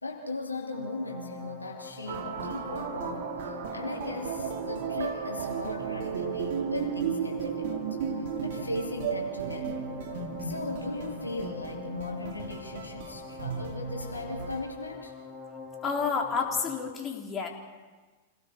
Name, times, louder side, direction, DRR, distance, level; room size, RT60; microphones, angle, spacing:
voice 1, 0.0-7.9 8.2-9.9 10.4-15.1, left 2 dB, 85° left, -1 dB, 2.9 m, -38 dB
sound 1, 0.7-16.9, left 4 dB, 5° left, 3.2 m, -44 dB
sound 2, 2.1-14.6, right 7 dB, 55° right, 2.4 m, -35 dB
voice 2, 15.8-17.5, left 5 dB, 25° left, 0 dB, 3.8 m, -30 dB
29.0 x 18.0 x 5.2 m, 1.3 s
figure-of-eight pair, 95°, 0 cm